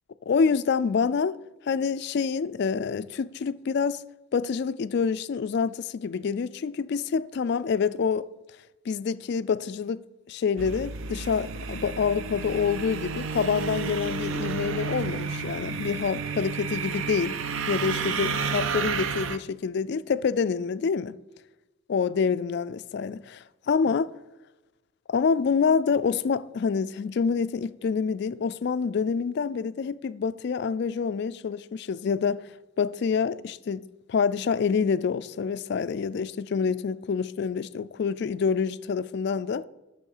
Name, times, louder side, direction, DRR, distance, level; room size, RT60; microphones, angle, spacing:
voice 1, 0.3-1.4 1.7-4.0 4.3-8.3 8.9-17.4 17.7-21.2 21.9-24.1 25.1-32.4 32.8-39.6, left 6 dB, 50° left, 0.3 m, -27 dB
sound 1, 10.6-19.4, right 5 dB, 70° right, 0.5 m, -31 dB
9.9 x 6.7 x 5.6 m
head